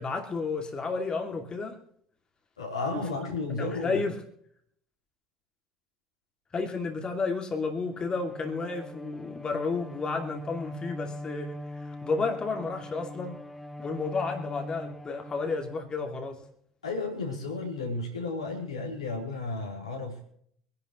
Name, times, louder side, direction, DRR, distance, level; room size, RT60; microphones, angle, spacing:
voice 1, 0.0-1.8 2.9-3.1 3.6-4.2 6.5-13.4 13.8-16.4, left 4 dB, 30° left, 2.6 m, -32 dB
voice 2, 2.6-4.0 16.8-20.2, left 3 dB, 80° left, 3.8 m, -33 dB
Bowed string instrument, 7.9-16.3, left 1 dB, 5° left, 1.2 m, -42 dB
25.0 x 11.5 x 3.1 m
figure-of-eight pair, 60°, 3 cm